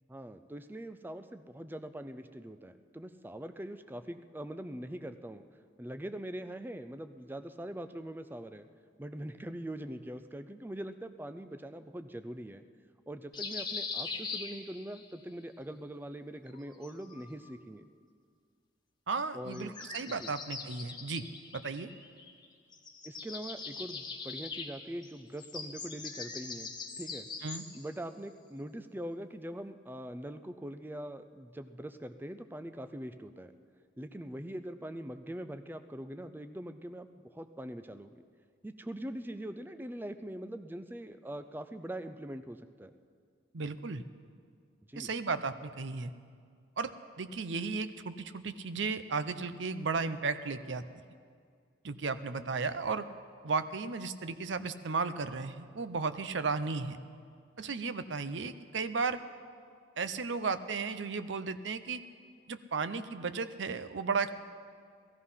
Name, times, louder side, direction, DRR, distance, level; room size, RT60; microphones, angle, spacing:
voice 1, 0.1-5.4 5.8-8.7 9.0-12.6 13.1-17.8 19.3-19.7 20.2-20.3 23.0-27.3 27.7-33.5 34.0-38.2 38.6-42.9 44.9-45.1, right 1 dB, 10° right, 9 dB, 0.4 m, -42 dB
sound 1, 13.3-15.1 16.5-17.5 19.5-22.5 22.7-27.9, left 4 dB, 20° left, 1.1 m, -42 dB
voice 2, 19.1-21.3 21.5-21.9 27.4-27.6 43.5-44.0 44.9-46.1 46.8-46.9 47.2-50.8 51.8-53.1 53.4-57.0 57.6-59.2 60.0-62.0 62.5-64.3, right 4 dB, 70° right, 12 dB, 0.7 m, -34 dB
16.0 x 14.5 x 5.7 m, 2.1 s
head